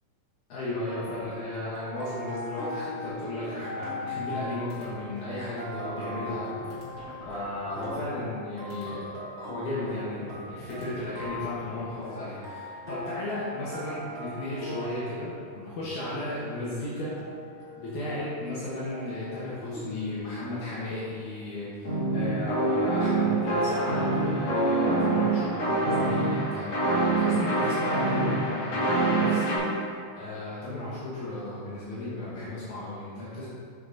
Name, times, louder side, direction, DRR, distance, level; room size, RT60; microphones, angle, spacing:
voice 1, 0.5-6.5 7.3-17.1 17.8-29.8 30.2-33.5, left 1 dB, 70° left, -9 dB, 2.7 m, -35 dB
sound 1, 0.9-20.2, left 1 dB, 80° right, 0.6 m, -40 dB
sound 2, 3.8-4.4 4.7-5.0 5.5-5.6 5.8-8.4 8.7-9.0 9.8-11.8, equal, 40° right, 1.6 m, -46 dB
sound 3, 21.8-29.6, right 2 dB, 50° left, 2.8 m, -25 dB
9.4 x 6.6 x 2.8 m, 2.3 s
omnidirectional pair, 3.7 m